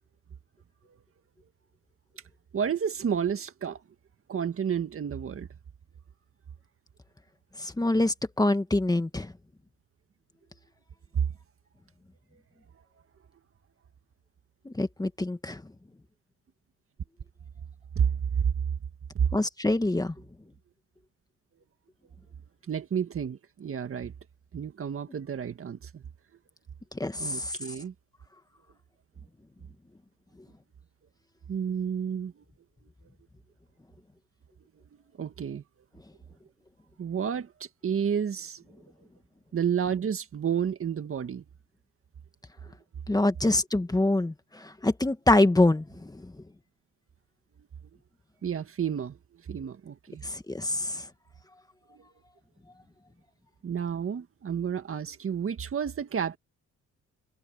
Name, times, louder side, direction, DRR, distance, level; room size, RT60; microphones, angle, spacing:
voice 1, 2.5-3.8 4.3-5.5 11.1-11.3 18.0-18.1 18.4-18.5 19.1-19.3 22.7-24.1 24.5-26.0 27.2-27.9 31.5-32.4 35.2-35.6 37.0-37.5 37.8-38.6 39.5-41.4 48.4-49.2 49.5-50.2 51.9-52.0 53.6-56.4, right 7 dB, 45° right, 1.9 m, -30 dB
voice 2, 7.6-9.3 14.6-15.6 19.3-20.1 27.0-27.5 43.1-44.3 44.8-46.1 50.2-51.0, left 2 dB, 15° left, 1.7 m, -25 dB
cardioid pair, 90°, 30 cm